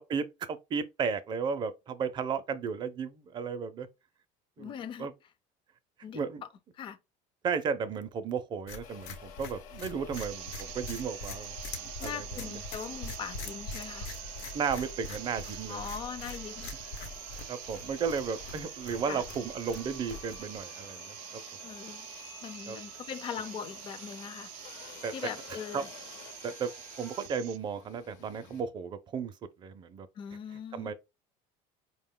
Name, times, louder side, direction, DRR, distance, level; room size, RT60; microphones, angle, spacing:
voice 1, 0.1-3.9 4.6-4.7 5.0-5.1 6.1-6.4 7.4-12.6 14.5-15.8 17.5-21.4 22.7-22.8 25.0-25.3 25.7-25.8 26.4-26.7 27.0-29.3 29.6-30.1 30.7-30.9, right 6 dB, 30° right, 0.4 m, -34 dB
voice 2, 4.6-5.1 6.0-6.2 6.8-7.0 12.0-14.1 15.7-16.7 19.1-19.2 21.6-22.1 22.4-24.5 25.1-25.9 30.2-30.9, left 7 dB, 30° left, 0.5 m, -40 dB
sound 1, 8.7-20.6, left 3 dB, 80° left, 1.0 m, -43 dB
sound 2, 8.8-28.6, left 7 dB, 60° left, 0.8 m, -51 dB
sound 3, 10.1-27.6, right 16 dB, 85° right, 0.4 m, -46 dB
4.8 x 2.2 x 3.6 m
cardioid pair, 155°, 16 cm